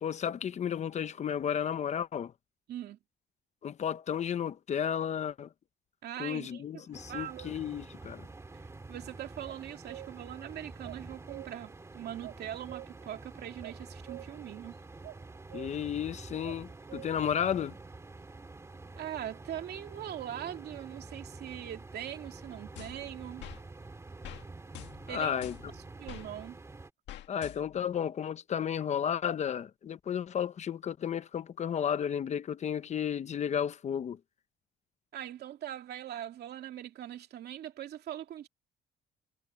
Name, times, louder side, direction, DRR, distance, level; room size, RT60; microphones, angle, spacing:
voice 1, 0.0-2.3 3.6-5.5 6.2-8.3 15.5-17.8 25.1-25.5 27.3-34.2, left 8 dB, 40° left, 0.7 m, -33 dB
voice 2, 2.7-3.0 6.0-6.6 7.1-7.6 8.9-14.8 19.0-23.5 25.1-25.3 26.0-26.6 35.1-38.5, right 11 dB, 60° right, 2.6 m, -41 dB
sound 1, 6.9-26.9, right 3 dB, 15° right, 1.9 m, -48 dB
sound 2, 9.5-10.3 10.8-11.8 12.2-13.2 13.6-14.7 15.0-15.2 15.5-16.0 16.4-17.4, right 15 dB, 90° right, 3.5 m, -48 dB
sound 3, 22.8-23.6 24.2-24.4 24.7-26.3 27.1-27.9, left 12 dB, 75° left, 1.9 m, -47 dB
cardioid pair, 145°, 19 cm